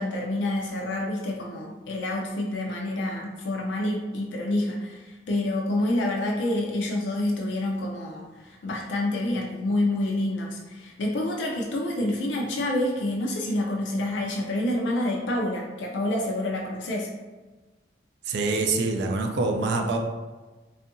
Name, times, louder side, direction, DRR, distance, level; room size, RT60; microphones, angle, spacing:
voice 1, 0.0-17.1, left 1 dB, 85° left, -1 dB, 0.4 m, -28 dB
voice 2, 18.3-20.0, right 3 dB, 70° right, 4 dB, 0.3 m, -25 dB
2.6 x 2.4 x 2.5 m, 1.2 s
head